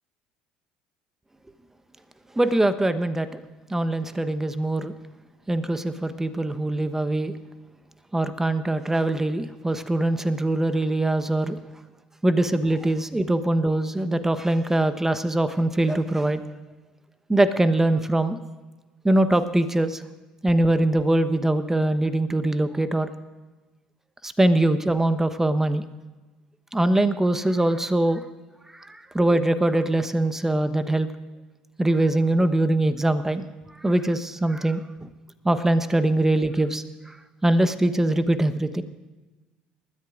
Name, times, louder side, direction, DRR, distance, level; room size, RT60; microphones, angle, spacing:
voice 1, 2.4-3.4 3.7-4.9 5.5-7.3 8.1-11.6 12.2-16.4 17.3-18.4 19.0-20.0 20.4-23.1 24.2-25.8 26.7-28.2 28.7-31.1 31.8-33.5 33.8-35.1 35.4-37.1 37.4-38.8, right 1 dB, 10° right, 11 dB, 1.1 m, -22 dB
28.5 x 13.5 x 2.6 m, 1.2 s
figure-of-eight pair, 60°, 4 cm